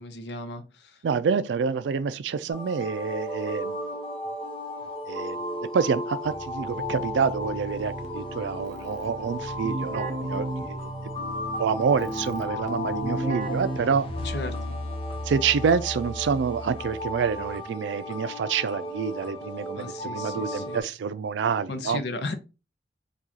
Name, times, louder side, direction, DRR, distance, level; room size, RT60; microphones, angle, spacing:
voice 1, 0.0-1.0 14.2-14.8 19.7-20.8 21.7-22.3, left 3 dB, 65° left, 0.6 m, -35 dB
voice 2, 1.0-3.8 5.1-10.9 11.6-14.1 15.2-22.0, right 6 dB, 75° right, 0.3 m, -27 dB
sound 1, 2.5-20.8, left 1 dB, 30° left, 0.8 m, -34 dB
Keyboard (musical), 6.2-14.5, right 2 dB, 45° right, 0.7 m, -36 dB
4.7 x 2.4 x 2.7 m
head